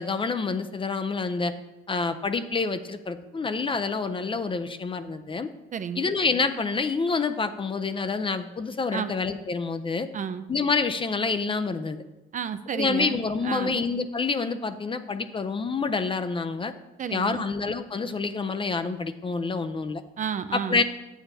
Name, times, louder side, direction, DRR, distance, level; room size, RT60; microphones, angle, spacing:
voice 1, 0.0-1.5 1.9-5.5 6.0-10.1 10.5-12.0 12.7-16.7 17.1-20.0 20.5-20.8, left 4 dB, 25° left, 10 dB, 0.4 m, -27 dB
voice 2, 5.7-6.1 8.9-9.1 10.1-10.5 12.3-13.2 13.4-13.8 17.0-17.4 20.2-20.8, right 7 dB, 40° right, 11 dB, 0.4 m, -31 dB
8.6 x 7.0 x 2.7 m, 1.1 s
cardioid pair, 90°, 20 cm